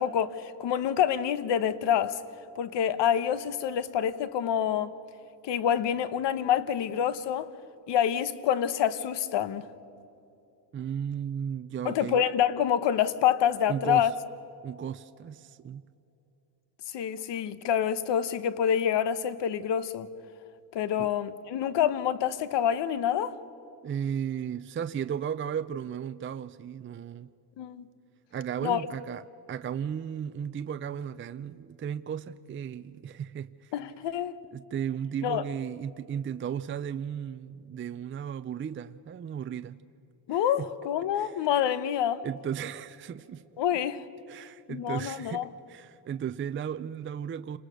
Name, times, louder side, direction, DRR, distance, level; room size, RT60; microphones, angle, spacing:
voice 1, 0.0-2.2 2.6-4.9 5.4-7.5 7.9-9.7 11.8-14.1 16.9-20.1 20.7-23.3 27.6-27.9 28.6-28.8 33.7-34.4 35.2-35.4 40.3-42.2 43.6-44.1 44.7-45.5, left 9 dB, 65° left, 1.3 m, -27 dB
voice 2, 10.7-12.2 13.7-14.1 14.6-15.8 21.0-21.1 23.8-27.3 28.3-29.2 29.5-33.7 34.5-39.8 40.3-40.7 41.1-41.4 42.2-43.4 44.3-47.6, right 8 dB, 25° right, 0.5 m, -35 dB
29.0 x 20.5 x 6.4 m
cardioid pair, 105°, 46 cm